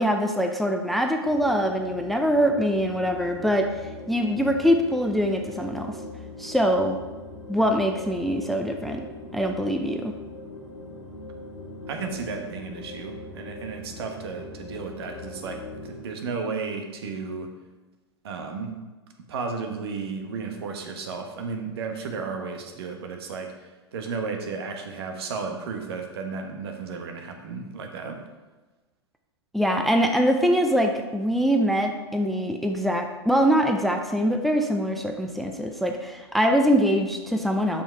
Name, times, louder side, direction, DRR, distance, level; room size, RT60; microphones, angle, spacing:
voice 1, 0.0-6.0 6.4-7.0 7.5-9.1 9.3-10.1 29.5-37.8, equal, ahead, 4 dB, 0.5 m, -23 dB
sound 1, 1.2-16.0, left 2 dB, 90° left, 1.8 m, -41 dB
voice 2, 11.9-17.5 18.2-18.7 19.3-23.5 23.9-28.2, right 4 dB, 65° right, 4 dB, 1.3 m, -33 dB
7.1 x 5.8 x 4.5 m, 1.2 s
hypercardioid pair, 105°, 14 cm